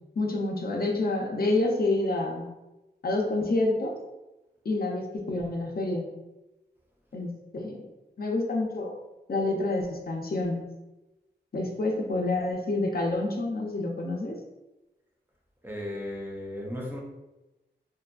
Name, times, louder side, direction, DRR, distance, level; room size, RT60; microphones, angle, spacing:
voice 1, 0.2-2.5 3.0-3.9 4.6-6.1 7.1-7.8 8.2-8.9 9.3-10.6 11.5-14.4, left 2 dB, 55° left, 0 dB, 0.5 m, -28 dB
voice 2, 15.6-17.0, left 1 dB, 10° right, -2 dB, 0.6 m, -35 dB
2.7 x 2.4 x 2.3 m, 1.0 s
wide cardioid pair, 60°, 19 cm